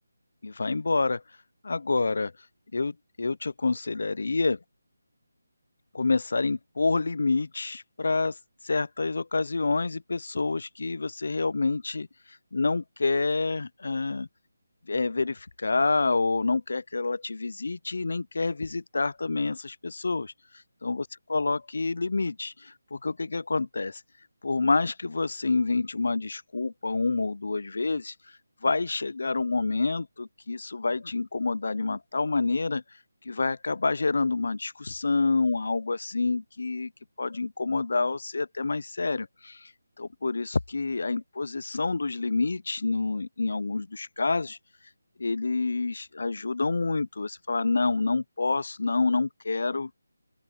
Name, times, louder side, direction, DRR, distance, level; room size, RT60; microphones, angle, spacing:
voice 1, 0.4-1.2 1.6-2.3 2.7-4.6 5.9-8.4 8.6-12.1 12.5-14.3 14.9-20.3 20.8-21.0 21.3-24.0 24.4-28.1 28.6-32.8 33.3-36.9 37.2-39.7 40.0-44.6 45.2-49.9, left 3 dB, 60° left, 0.4 m, -28 dB
open air
figure-of-eight pair, 175°, 0 cm